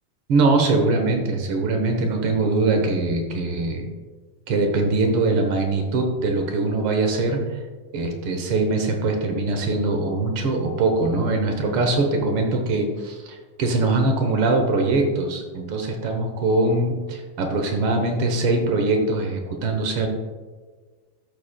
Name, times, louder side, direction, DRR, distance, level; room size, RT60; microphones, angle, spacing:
voice 1, 0.3-3.9 4.5-7.6 7.9-20.1, right 3 dB, 70° right, 4 dB, 1.3 m, -22 dB
12.5 x 7.3 x 2.2 m, 1.4 s
omnidirectional pair, 3.6 m